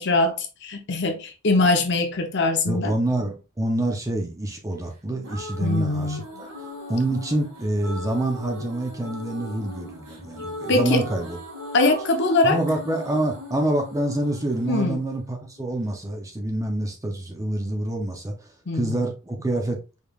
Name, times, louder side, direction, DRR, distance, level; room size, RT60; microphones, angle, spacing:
voice 1, 0.0-2.9 5.6-6.2 10.7-11.0 11.7-12.6 14.7-15.0 18.7-19.0, left 2 dB, 50° left, 0.8 m, -22 dB
voice 2, 2.7-6.5 6.9-11.4 12.4-18.5 18.7-19.8, right 1 dB, 15° right, 0.6 m, -26 dB
sound 1, 4.9-15.9, equal, 70° right, 2.1 m, -39 dB
5.1 x 3.3 x 2.4 m
head